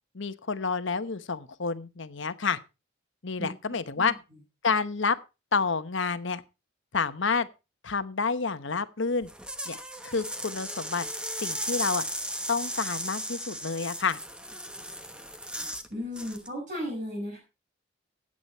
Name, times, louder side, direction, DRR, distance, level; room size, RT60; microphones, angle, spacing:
voice 1, 0.1-2.6 3.2-4.1 4.6-5.2 5.5-6.4 6.9-7.5 7.8-9.3 9.7-11.1 11.4-12.0 12.5-14.2, left 5 dB, 65° left, 1.0 m, -29 dB
sound 1, 9.2-15.9 16.2-16.5, right 1 dB, 5° right, 1.0 m, -36 dB
voice 2, 15.9-17.4, equal, 40° right, 5.8 m, -35 dB
15.0 x 8.6 x 4.3 m
head